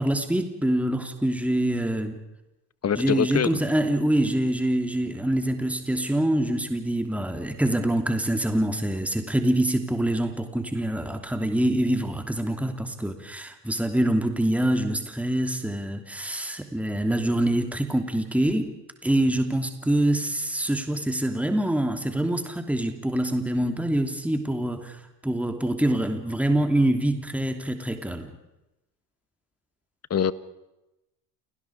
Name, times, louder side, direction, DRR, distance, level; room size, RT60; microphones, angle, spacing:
voice 1, 0.0-2.2 2.9-18.7 19.0-28.3, right 1 dB, 5° right, 6 dB, 3.0 m, -25 dB
voice 2, 2.8-3.5 30.1-30.3, left 8 dB, 30° left, 16 dB, 1.4 m, -23 dB
29.5 x 19.0 x 4.9 m, 0.94 s
hypercardioid pair, 65°, 49 cm